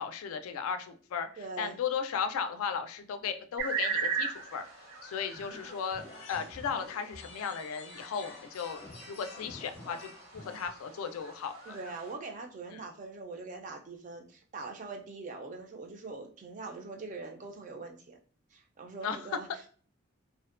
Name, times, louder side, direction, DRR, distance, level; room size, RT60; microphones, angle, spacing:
voice 1, 0.0-4.6 5.0-8.8 9.1-11.5 19.0-19.2, left 6 dB, 85° left, 9 dB, 0.3 m, -36 dB
voice 2, 1.4-1.8 11.7-18.2 18.5-19.7, right 3 dB, 35° right, 3 dB, 0.3 m, -43 dB
sound 1, 3.6-12.1, right 5 dB, 65° right, 0.7 m, -39 dB
sound 2, 5.3-10.7, left 2 dB, 30° left, 0.5 m, -49 dB
2.5 x 2.1 x 2.4 m, 0.43 s
head